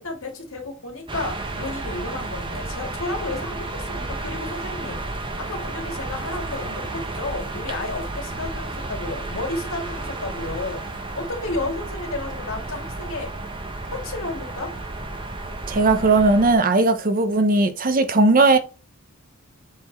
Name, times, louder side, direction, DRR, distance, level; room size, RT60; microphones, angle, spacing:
voice 1, 0.0-10.8 11.2-13.3 13.9-14.7, left 2 dB, 65° left, 2.6 m, -32 dB
sound 1, 1.1-16.5, right 2 dB, 25° right, 1.1 m, -32 dB
voice 2, 15.7-18.6, right 3 dB, 40° right, 0.8 m, -17 dB
7.3 x 4.3 x 4.3 m
head